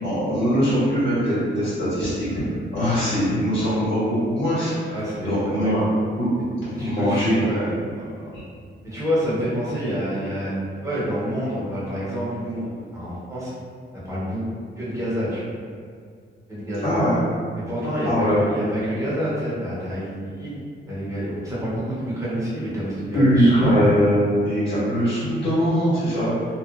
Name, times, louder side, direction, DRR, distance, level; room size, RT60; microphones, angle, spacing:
voice 1, 0.0-2.3 2.7-5.8 6.2-6.3 6.6-7.6 8.3-8.4 16.8-17.2 18.0-18.4 23.1-26.3, equal, 70° left, -11 dB, 1.5 m, -21 dB
voice 2, 4.9-5.8 6.7-8.3 8.8-13.5 14.0-14.4 14.8-15.5 16.5-17.0 17.6-20.6 20.9-23.8 24.7-24.8, equal, 15° right, -10 dB, 0.6 m, -28 dB
2.7 x 2.1 x 2.3 m, 2.1 s
wide cardioid pair, 150°, 19 cm